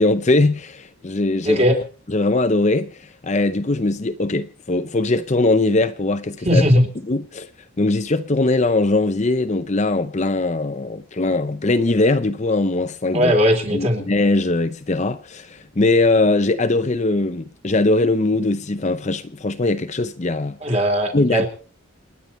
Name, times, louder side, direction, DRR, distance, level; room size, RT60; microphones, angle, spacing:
voice 1, 0.0-1.6 2.1-6.6 7.1-7.5 7.8-13.3 13.7-20.6 21.1-21.5, left 2 dB, 35° left, 0.7 m, -20 dB
voice 2, 1.4-1.8 6.5-6.9 13.1-14.1 20.6-21.5, equal, 30° right, 3.6 m, -18 dB
28.5 x 10.5 x 4.4 m
head